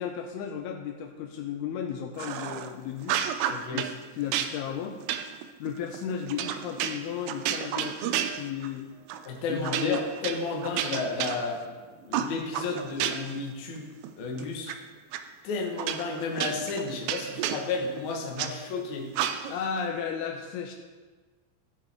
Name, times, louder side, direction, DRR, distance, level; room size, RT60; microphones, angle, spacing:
voice 1, 0.0-3.3 3.7-5.0 5.6-8.9 9.5-10.0 19.5-20.7, left 8 dB, 90° left, 3 dB, 2.2 m, -34 dB
sound 1, 2.2-2.7 3.0-4.0 4.3-8.8 9.1-9.3 9.6-11.7 12.1-13.4 13.8-14.8 15.1-15.2 15.8-18.5 19.1-19.7, right 10 dB, 85° right, 2.8 m, -31 dB
voice 2, 3.5-3.8 9.3-11.6 12.0-13.9 14.2-14.7 15.4-19.1, left 3 dB, 65° left, 0 dB, 2.0 m, -32 dB
15.5 x 5.6 x 3.5 m, 1.4 s
omnidirectional pair, 5.1 m